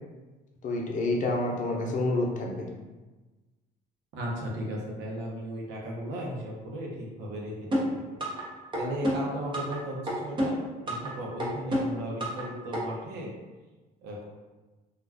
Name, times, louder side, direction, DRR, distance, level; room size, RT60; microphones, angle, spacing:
voice 1, 0.6-2.7, left 2 dB, 50° left, 0 dB, 0.6 m, -28 dB
voice 2, 4.1-8.0 8.8-13.3 14.0-14.2, right 1 dB, 85° right, -2 dB, 0.8 m, -36 dB
sound 1, 7.7-8.4 8.7-9.8 10.1-11.1 11.4-12.4 12.7-12.8, equal, 30° right, 0.7 m, -28 dB
2.4 x 2.2 x 3.3 m, 1.2 s
cardioid pair, 110°, 17 cm